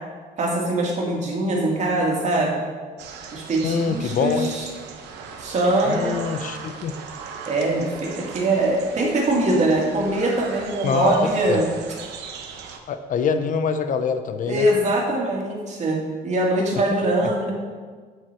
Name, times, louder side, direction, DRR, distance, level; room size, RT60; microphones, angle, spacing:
voice 1, 0.4-2.6 3.3-4.7 5.4-6.2 7.4-11.6 14.5-17.5, right 1 dB, 45° right, -2 dB, 2.4 m, -22 dB
sound 1, 3.0-12.8, right 6 dB, 85° right, 1.1 m, -39 dB
voice 2, 3.6-4.5 5.9-6.9 10.8-11.1 11.5-11.6 12.9-14.7, left 6 dB, 50° left, 9 dB, 0.7 m, -24 dB
8.1 x 8.0 x 4.4 m, 1.5 s
cardioid pair, 110°, 17 cm